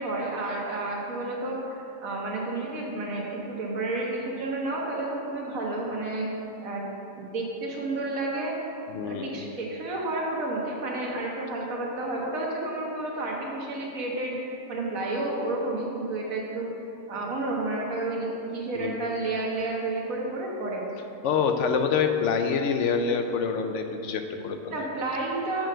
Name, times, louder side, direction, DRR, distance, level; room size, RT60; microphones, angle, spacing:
voice 1, 0.0-6.9 7.1-8.6 9.0-16.7 17.1-20.9 24.7-25.7, right 2 dB, 90° right, -2 dB, 1.7 m, -31 dB
voice 2, 8.9-9.5 18.7-19.0 21.2-24.8, left 6 dB, 70° left, 6 dB, 0.9 m, -26 dB
7.1 x 5.4 x 6.2 m, 2.8 s
omnidirectional pair, 1.4 m